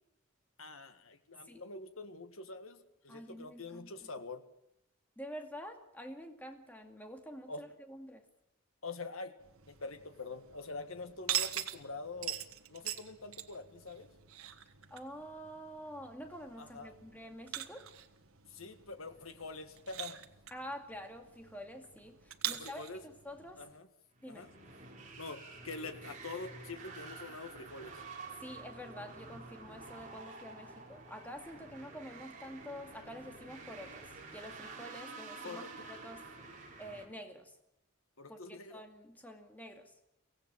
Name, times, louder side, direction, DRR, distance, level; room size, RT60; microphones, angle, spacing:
voice 1, 0.6-4.4 7.5-7.7 8.8-9.3 9.7-12.4 12.7-14.1 16.6-17.0 18.5-20.2 22.5-23.0 23.6-23.9 24.3-24.5 25.2-28.0 35.4-35.9 38.2-38.8, left 3 dB, 85° left, 8 dB, 1.9 m, -45 dB
voice 2, 3.1-4.1 5.2-8.2 14.9-17.9 20.5-23.6 24.2-24.5 28.4-36.3 36.8-37.6 38.3-40.0, equal, 10° left, 4 dB, 2.2 m, -48 dB
sound 1, 9.4-23.8, right 11 dB, 90° right, 1.5 m, -44 dB
sound 2, 24.2-37.1, right 4 dB, 40° right, 4.2 m, -49 dB
24.0 x 17.0 x 7.5 m, 0.80 s
head